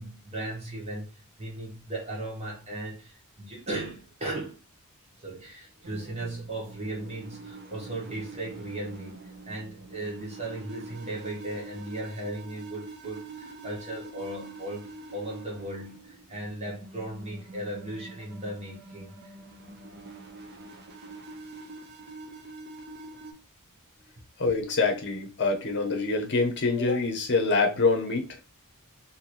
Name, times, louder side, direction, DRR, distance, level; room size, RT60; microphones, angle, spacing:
voice 1, 0.0-4.6 5.2-19.2, right 1 dB, 30° right, 0.9 m, -37 dB
sound 1, 5.8-23.3, right 2 dB, 50° right, 0.6 m, -45 dB
voice 2, 24.4-28.2, left 3 dB, 55° left, 0.8 m, -25 dB
2.9 x 2.7 x 2.5 m
head